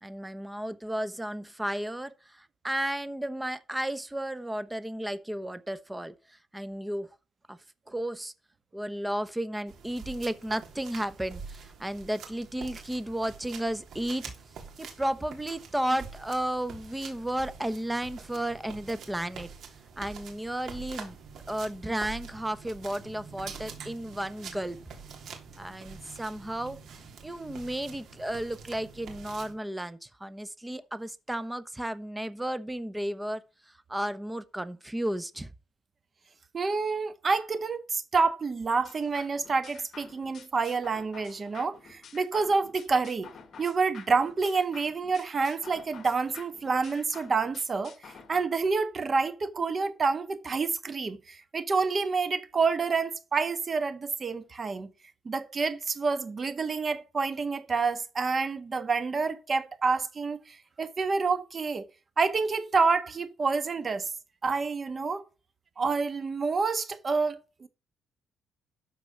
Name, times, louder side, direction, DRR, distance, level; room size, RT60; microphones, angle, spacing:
voice 1, 0.0-6.1 6.5-7.1 7.5-7.6 7.9-8.3 8.7-14.2 14.8-19.5 20.0-21.1 21.5-24.8 25.6-26.8 27.2-33.4 33.9-35.5, right 1 dB, 10° right, 1.0 m, -33 dB
sound 1, 9.7-29.5, right 6 dB, 70° right, 3.2 m, -46 dB
voice 2, 36.5-43.3 43.6-54.9 55.2-61.8 62.2-64.1 64.4-65.2 65.8-67.7, right 4 dB, 40° right, 1.5 m, -28 dB
sound 2, 38.8-48.4, left 6 dB, 55° left, 1.7 m, -50 dB
13.0 x 4.7 x 5.9 m
cardioid pair, 90°, 0 cm